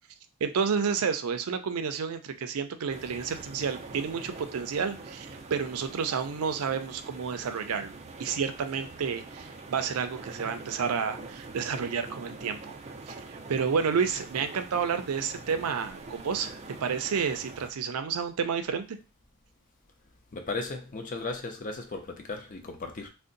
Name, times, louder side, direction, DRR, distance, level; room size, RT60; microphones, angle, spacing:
voice 1, 0.4-7.9 8.2-12.8 13.1-19.0, right 6 dB, 90° right, 0.4 m, -30 dB
sound 1, 2.9-17.7, right 3 dB, 30° right, 0.4 m, -44 dB
voice 2, 20.3-23.1, left 3 dB, 40° left, 0.6 m, -36 dB
2.5 x 2.1 x 3.8 m
head